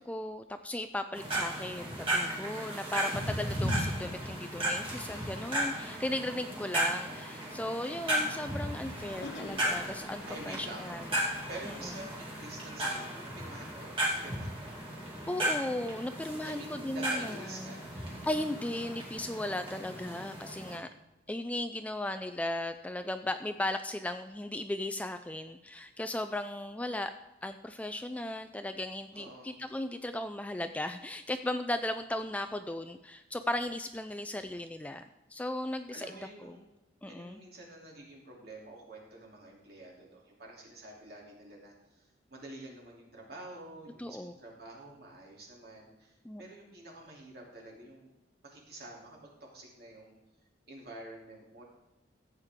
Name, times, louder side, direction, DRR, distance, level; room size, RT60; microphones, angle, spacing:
voice 1, 0.0-11.1 11.6-11.9 15.3-17.8 18.2-20.9 21.3-27.1 27.4-36.1 36.4-36.6 37.0-37.4 44.0-44.3 46.2-46.4, left 1 dB, 10° left, 9 dB, 0.3 m, -36 dB
sound 1, 1.1-20.8, right 1 dB, 30° right, 2.4 m, -35 dB
sound 2, 9.0-12.7, left 2 dB, 80° left, 1.2 m, -49 dB
voice 2, 10.3-10.9 11.5-14.8 16.4-17.9 29.1-29.5 35.9-36.6 37.0-48.1 48.4-50.1 50.7-51.6, right 2 dB, 55° right, -2 dB, 3.0 m, -48 dB
14.5 x 8.2 x 3.6 m, 1.0 s
head